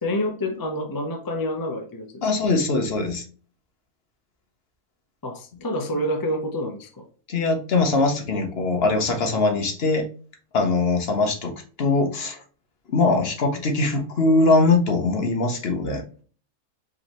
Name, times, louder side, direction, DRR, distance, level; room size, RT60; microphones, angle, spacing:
voice 1, 0.0-2.5 5.2-7.0, left 1 dB, 25° left, 4 dB, 0.4 m, -28 dB
voice 2, 2.2-3.2 7.3-10.1 10.5-12.4 12.9-16.0, left 3 dB, 50° left, 4 dB, 0.9 m, -21 dB
5.0 x 3.2 x 2.9 m, 0.40 s
omnidirectional pair, 1.6 m